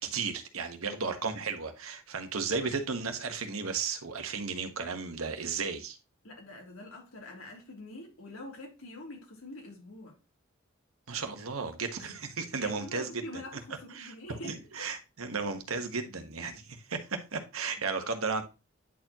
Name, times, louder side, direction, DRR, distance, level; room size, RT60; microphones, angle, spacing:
voice 1, 0.0-6.0 11.1-13.2 13.9-18.4, right 4 dB, 90° right, 1.3 m, -34 dB
voice 2, 6.2-10.2 12.6-14.9 17.8-17.9, left 1 dB, 85° left, 3.1 m, -45 dB
9.9 x 4.5 x 2.9 m
head